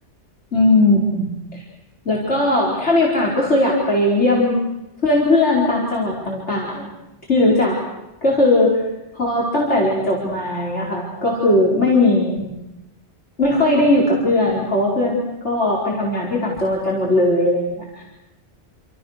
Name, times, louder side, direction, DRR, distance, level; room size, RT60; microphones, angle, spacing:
voice 1, 0.5-1.6 2.1-4.6 5.0-6.9 7.3-7.8 8.2-8.8 9.1-12.6 13.4-18.0, left 2 dB, 80° left, -4 dB, 5.3 m, -18 dB
29.0 x 27.5 x 6.7 m, 0.95 s
omnidirectional pair, 1.2 m